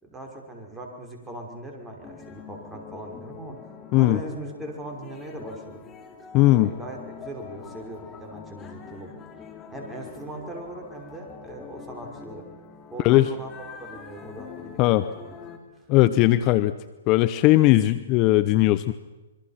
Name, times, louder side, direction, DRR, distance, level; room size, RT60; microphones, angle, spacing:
voice 1, 0.0-3.6 3.9-5.9 6.5-9.1 9.7-12.4 12.9-15.4 15.8-15.9, right 1 dB, 10° right, 1 dB, 5.5 m, -39 dB
sound 1, 2.0-15.6, left 6 dB, 20° left, 3.5 m, -44 dB
voice 2, 6.3-6.7 13.0-13.3 14.8-15.0 15.9-16.7 17.1-18.9, left 16 dB, 35° left, 14 dB, 0.8 m, -18 dB
26.5 x 23.5 x 5.9 m, 1.1 s
hypercardioid pair, 120°, 0 cm